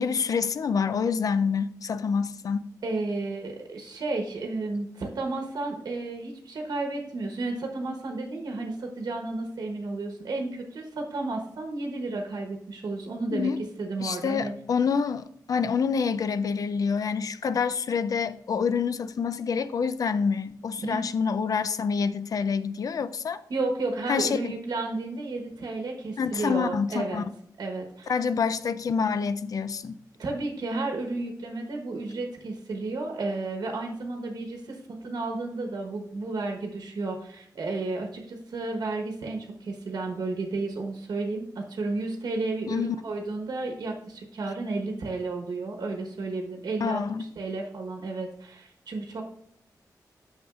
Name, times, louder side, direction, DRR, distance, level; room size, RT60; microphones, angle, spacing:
voice 1, 0.0-2.7 13.3-13.6 14.0-23.4 24.1-24.5 26.2-27.2 28.1-30.0 42.7-43.0 46.8-47.3, left 6 dB, 55° left, 0.4 m, -27 dB
voice 2, 2.8-13.5 13.8-14.5 20.8-21.0 23.5-27.2 27.6-28.1 30.2-34.8 35.0-47.0 47.4-49.2, right 3 dB, 75° right, 1.1 m, -32 dB
9.1 x 6.4 x 2.4 m
wide cardioid pair, 175°, 7 cm